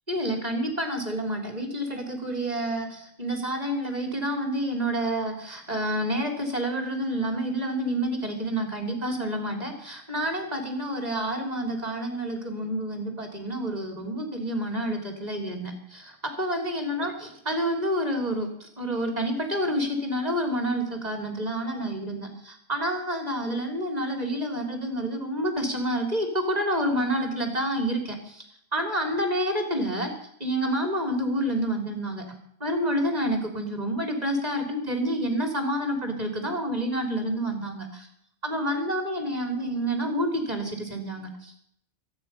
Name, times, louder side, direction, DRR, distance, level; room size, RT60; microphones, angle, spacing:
voice 1, 0.1-28.4 28.7-30.1 30.4-32.3 32.6-38.1 38.4-41.6, equal, 35° right, 3 dB, 3.3 m, -28 dB
24.0 x 9.5 x 5.6 m, 0.69 s
omnidirectional pair, 1.2 m